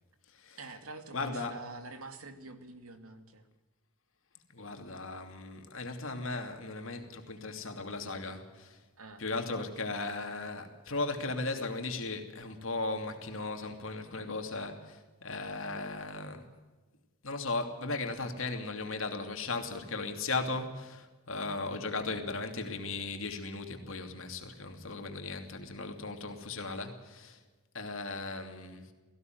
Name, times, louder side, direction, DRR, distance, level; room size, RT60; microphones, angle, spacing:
voice 1, 0.6-3.5 9.0-9.2, right 3 dB, 75° right, 7 dB, 2.5 m, -46 dB
voice 2, 1.1-1.5 4.5-8.8 9.2-16.5 17.2-27.4 27.7-28.9, left 3 dB, 65° left, 5 dB, 2.8 m, -37 dB
18.5 x 16.0 x 9.3 m, 1.2 s
head